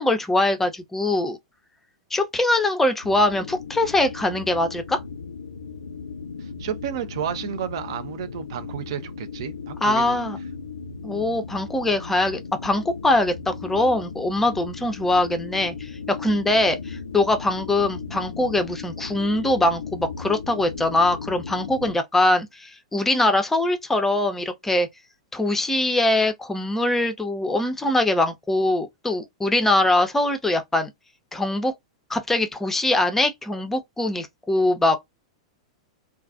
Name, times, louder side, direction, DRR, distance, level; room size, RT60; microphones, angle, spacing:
voice 1, 0.0-1.4 2.1-5.0 9.8-10.4 11.0-24.9 25.3-30.9 31.3-31.7 32.1-35.0, left 2 dB, 10° left, 0.5 m, -22 dB
sound 1, 3.0-21.9, left 5 dB, 80° left, 0.4 m, -36 dB
voice 2, 6.4-10.3, right 9 dB, 55° right, 0.4 m, -32 dB
2.3 x 2.3 x 2.4 m
figure-of-eight pair, 100°, 3 cm